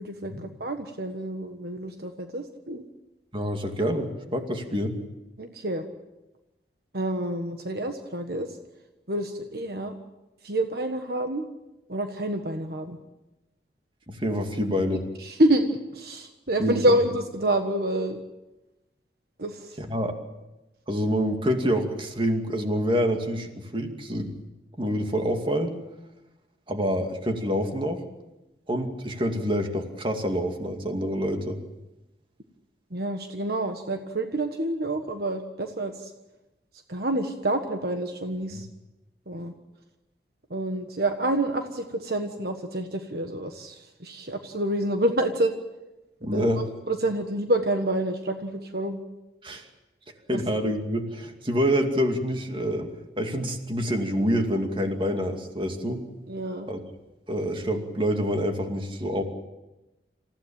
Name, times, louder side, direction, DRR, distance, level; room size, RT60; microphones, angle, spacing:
voice 1, 0.0-2.8 5.4-5.8 6.9-8.5 9.1-9.9 10.4-11.4 11.9-13.0 15.3-18.2 19.4-19.7 32.9-36.1 36.9-38.7 39.3-39.5 40.5-45.5 46.3-49.0 50.3-50.4 56.3-56.7, right 1 dB, 60° right, 6 dB, 1.5 m, -28 dB
voice 2, 3.3-5.0 14.1-15.0 16.6-17.0 19.8-20.2 20.9-24.3 24.8-25.7 26.7-28.0 28.7-31.6 38.5-38.6 46.2-46.7 49.4-49.7 50.3-52.9 53.2-56.1 56.7-56.8 57.3-59.2, equal, 30° right, 4 dB, 2.4 m, -27 dB
27.5 x 15.5 x 8.9 m, 1.0 s
head